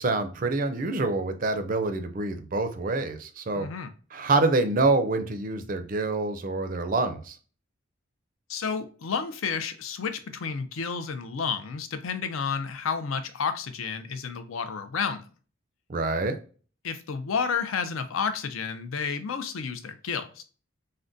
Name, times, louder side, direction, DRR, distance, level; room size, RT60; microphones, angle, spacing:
voice 1, 0.0-3.7 4.1-7.4 15.9-16.4, right 3 dB, 40° right, 0.4 m, -26 dB
voice 2, 3.5-3.9 8.5-15.2 16.8-20.4, left 6 dB, 85° left, 0.5 m, -31 dB
3.7 x 2.2 x 2.5 m
head